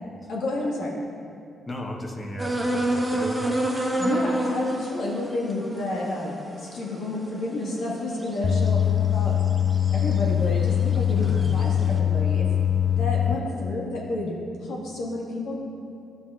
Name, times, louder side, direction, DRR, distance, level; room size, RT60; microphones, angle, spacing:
voice 1, 0.3-0.9 4.0-9.3 9.9-12.5 13.0-14.3 14.6-15.6, left 2 dB, 80° left, -4 dB, 1.7 m, -30 dB
voice 2, 1.7-3.6 11.1-12.0, left 1 dB, 25° left, 1 dB, 1.0 m, -36 dB
sound 1, 2.4-8.8 9.4-10.2 10.5-11.7, right 1 dB, 15° right, 1.2 m, -29 dB
sound 2, 8.4-13.3, left 9 dB, 50° left, 0.3 m, -22 dB
12.5 x 7.0 x 2.5 m, 2.5 s
cardioid pair, 90°, 0 cm